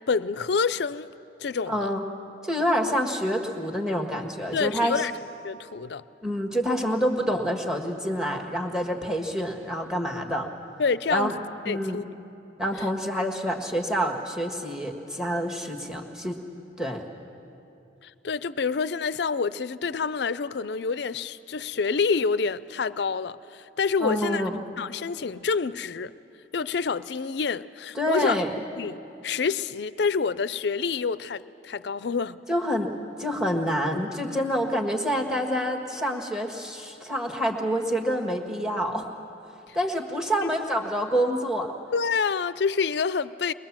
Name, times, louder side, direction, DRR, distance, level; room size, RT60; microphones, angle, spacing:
voice 1, 0.1-1.1 1.4-1.9 4.5-5.1 5.4-6.0 10.8-12.0 12.8-12.9 18.0-24.5 24.8-26.1 26.5-28.4 28.8-32.4 40.4-40.5 41.9-43.5, left 5 dB, 65° left, 0.5 m, -27 dB
voice 2, 1.7-2.0 2.4-5.1 6.2-10.5 11.1-11.3 11.6-12.0 12.6-16.4 16.8-17.0 24.0-24.6 27.9-28.5 32.5-32.9 33.2-39.1 39.7-41.7, equal, 5° right, 1.5 m, -27 dB
22.0 x 21.0 x 7.3 m
head